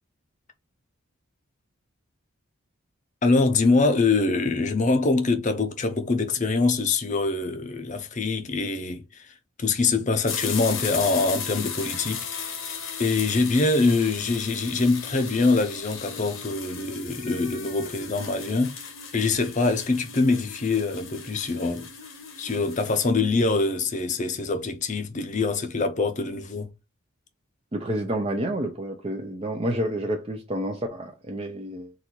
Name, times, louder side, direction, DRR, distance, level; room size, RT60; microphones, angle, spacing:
voice 1, 3.2-12.6 13.0-21.9 22.4-26.7, left 3 dB, 35° left, 0.6 m, -24 dB
sound 1, 10.3-23.1, left 6 dB, 70° left, 1.1 m, -36 dB
voice 2, 27.7-31.9, right 1 dB, 25° right, 0.5 m, -29 dB
4.0 x 2.6 x 4.5 m
head